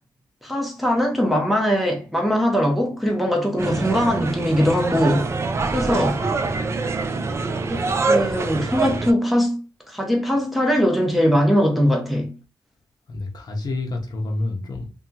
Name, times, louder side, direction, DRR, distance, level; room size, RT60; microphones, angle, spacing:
voice 1, 0.4-5.3 5.7-6.2 7.7-9.5 9.9-12.3, equal, ahead, 0.6 m, -21 dB
sound 1, 3.6-9.1, right 3 dB, 35° right, 0.3 m, -24 dB
voice 2, 13.1-14.9, left 2 dB, 50° left, 0.7 m, -29 dB
2.7 x 2.3 x 2.7 m
wide cardioid pair, 110°, 8 cm